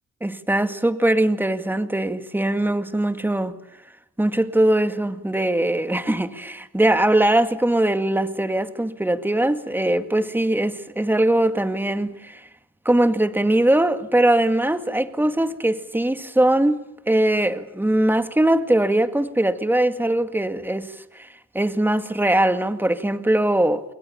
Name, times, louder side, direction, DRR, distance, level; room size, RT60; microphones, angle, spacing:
voice 1, 0.2-3.6 4.2-12.4 12.9-16.8 17.1-21.3 21.5-23.8, right 1 dB, 5° right, 2.2 m, -21 dB
28.5 x 23.0 x 7.1 m
cardioid pair, 90°, 30 cm